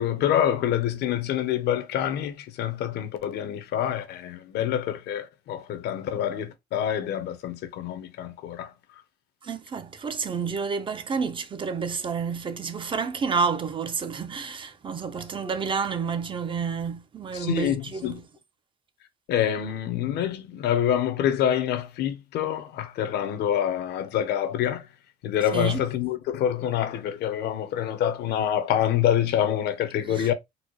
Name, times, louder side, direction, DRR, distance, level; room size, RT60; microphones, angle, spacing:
voice 1, 0.0-8.7 17.3-18.2 19.3-24.9 25.2-30.3, left 10 dB, 75° left, 0.7 m, -26 dB
voice 2, 9.4-18.2 25.5-25.8 30.0-30.3, right 5 dB, 30° right, 0.6 m, -29 dB
4.1 x 2.1 x 3.0 m
cardioid pair, 110°, 17 cm